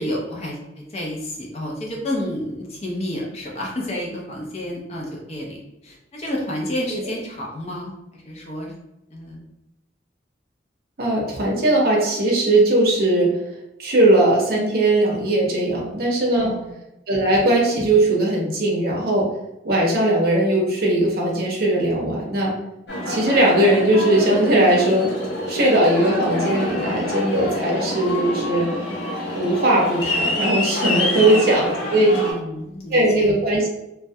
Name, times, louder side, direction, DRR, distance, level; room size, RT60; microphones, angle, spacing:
voice 1, 0.0-8.7 9.1-9.4 15.6-16.0 16.3-16.7 31.0-31.8 32.1-33.3, left 1 dB, 35° left, -2 dB, 0.6 m, -31 dB
voice 2, 11.0-13.3 13.8-16.5 17.1-19.3 19.6-22.5 23.1-25.1 25.5-28.7 29.3-32.2 32.9-33.7, right 1 dB, 55° right, -2 dB, 0.6 m, -19 dB
Aircraft, 22.9-32.3, left 1 dB, 70° left, 0.8 m, -26 dB
2.2 x 2.1 x 2.7 m, 0.91 s
head